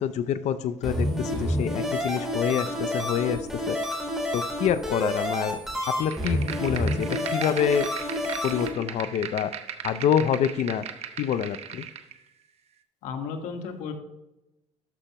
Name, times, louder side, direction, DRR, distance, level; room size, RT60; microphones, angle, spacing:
voice 1, 0.0-3.8 4.3-5.6 5.9-7.9 8.4-9.5 9.8-10.8 11.2-11.9, left 9 dB, 65° left, 12 dB, 0.6 m, -27 dB
sound 1, 0.8-8.7, equal, 5° right, 3.4 m, -29 dB
sound 2, 6.1-12.1, right 8 dB, 55° right, 0.9 m, -38 dB
voice 2, 13.0-13.9, left 6 dB, 85° left, 4 dB, 1.6 m, -34 dB
13.0 x 5.7 x 3.0 m, 0.92 s
cardioid pair, 115°, 13 cm